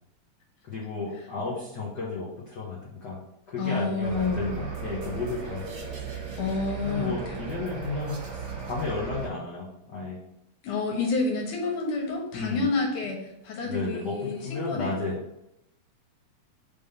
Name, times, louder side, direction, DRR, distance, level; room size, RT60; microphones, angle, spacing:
voice 1, 0.6-3.2 3.5-6.0 6.8-8.4 8.7-10.2 12.3-12.7 13.6-15.2, left 3 dB, 65° left, -5 dB, 1.0 m, -33 dB
voice 2, 3.6-4.4 6.4-7.1 10.6-15.0, left 3 dB, 80° left, 0 dB, 2.7 m, -29 dB
sound 1, 4.0-9.3, right 5 dB, 85° right, 0.9 m, -36 dB
5.2 x 3.6 x 5.4 m, 0.84 s
omnidirectional pair, 3.4 m